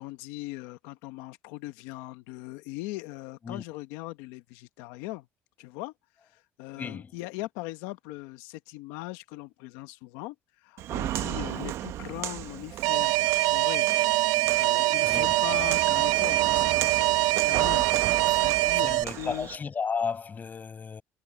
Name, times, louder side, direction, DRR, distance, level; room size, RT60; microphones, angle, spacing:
voice 1, 0.0-5.3 5.6-5.9 6.2-10.3 10.6-13.9 14.2-17.9 18.4-19.5, left 19 dB, 90° left, 1.3 m, -40 dB
voice 2, 6.8-7.2 15.0-15.4 18.8-21.0, left 5 dB, 35° left, 6.5 m, -33 dB
Walk footsteps, 10.8-19.6, right 13 dB, 70° right, 1.0 m, -35 dB
Alarm, 12.8-19.0, right 20 dB, 90° right, 0.6 m, -24 dB
supercardioid pair, 90°, 5 cm